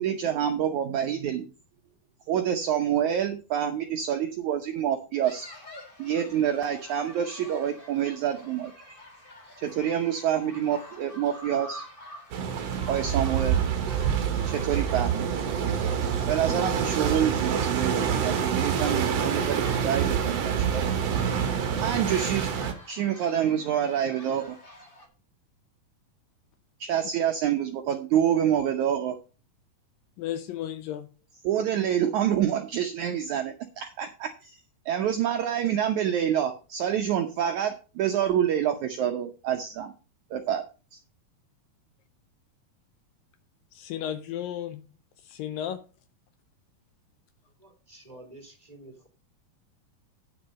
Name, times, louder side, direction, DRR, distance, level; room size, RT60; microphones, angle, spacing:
voice 1, 0.0-1.5 2.3-5.5 6.0-9.0 9.6-11.9 12.9-13.6 14.5-15.3 16.3-21.2 21.8-22.5 22.9-24.6 26.8-29.2 31.4-34.6 34.9-39.9 40.3-40.6 40.9-41.0, right 9 dB, 75° right, 1.8 m, -27 dB
sound 1, 5.2-25.1, left 1 dB, 25° left, 1.2 m, -48 dB
sound 2, 12.3-22.7, right 7 dB, 55° right, 1.9 m, -27 dB
voice 2, 30.2-31.1 43.7-44.8 45.2-45.8, left 10 dB, 75° left, 2.2 m, -33 dB
voice 3, 47.6-49.1, right 1 dB, 10° right, 2.3 m, -49 dB
9.8 x 6.6 x 5.4 m
omnidirectional pair, 4.4 m